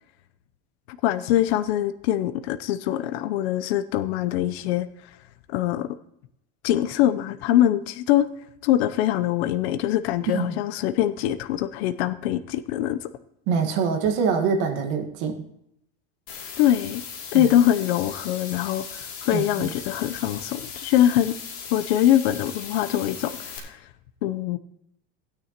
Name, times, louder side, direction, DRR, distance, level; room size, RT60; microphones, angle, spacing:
voice 1, 0.9-4.9 5.5-6.0 6.6-8.3 8.6-13.1 16.6-17.0 17.3-21.4 21.7-23.8 24.2-24.6, left 12 dB, 65° left, 10 dB, 0.7 m, -23 dB
voice 2, 10.3-10.6 13.5-15.4 17.3-17.5 19.3-19.7, right 6 dB, 45° right, 4 dB, 1.6 m, -24 dB
sound 1, 16.3-23.6, left 6 dB, 40° left, 2.7 m, -38 dB
16.5 x 9.6 x 2.9 m, 0.77 s
supercardioid pair, 170°, 35 cm